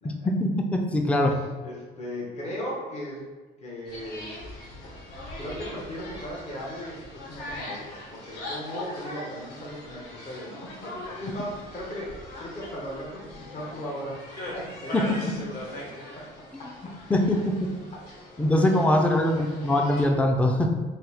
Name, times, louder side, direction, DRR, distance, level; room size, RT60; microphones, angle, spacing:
voice 1, 0.2-1.4 14.9-15.0 17.1-17.7 18.4-20.7, left 1 dB, 10° left, 3 dB, 0.4 m, -22 dB
voice 2, 1.3-3.2 3.6-4.3 5.3-12.1 12.4-15.4 15.7-15.9 16.6-16.7 19.0-19.1 19.4-19.5, equal, 40° left, -4 dB, 1.1 m, -37 dB
sound 1, 3.8-20.1, left 1 dB, 70° left, 1.1 m, -41 dB
4.2 x 2.1 x 4.0 m, 1.3 s
cardioid pair, 110°, 17 cm